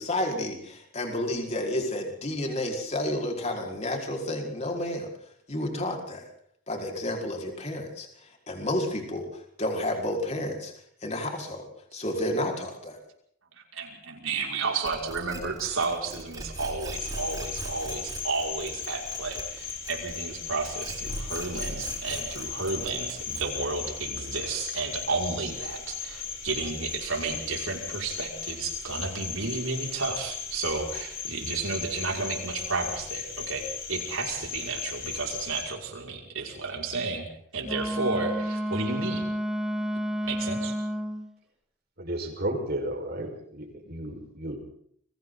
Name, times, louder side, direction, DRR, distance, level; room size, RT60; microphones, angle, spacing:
voice 1, 0.0-5.1 5.5-6.3 6.7-8.1 8.5-9.3 9.6-10.7 11.0-13.0, left 1 dB, 35° left, 1 dB, 5.0 m, -30 dB
voice 2, 13.6-37.3 37.5-39.3 40.2-40.7, right 3 dB, 85° right, 0 dB, 5.9 m, -32 dB
sound 1, 14.8-20.3 20.6-23.7, right 2 dB, 20° right, 7.2 m, -39 dB
Cricket, 16.9-35.6, left 7 dB, 70° left, 7.0 m, -37 dB
Wind instrument woodwind instrument, 37.6-41.3, equal, 5° right, 1.8 m, -30 dB
voice 3, 42.0-44.6, right 1 dB, 50° right, 3 dB, 5.4 m, -33 dB
29.5 x 23.0 x 4.1 m, 0.66 s
head